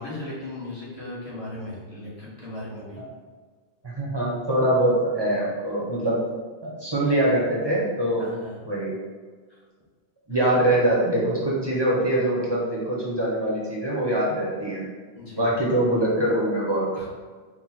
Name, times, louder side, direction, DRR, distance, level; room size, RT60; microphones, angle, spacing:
voice 1, 0.0-3.0 8.2-8.6 9.5-9.6 15.1-15.5 16.9-17.1, left 1 dB, 35° left, -8 dB, 1.4 m, -37 dB
voice 2, 4.0-6.2 6.6-8.3 8.6-8.9 10.3-14.8 15.4-16.9, right 1 dB, 25° right, -6 dB, 0.8 m, -23 dB
4.4 x 2.2 x 4.1 m, 1.5 s
omnidirectional pair, 1.1 m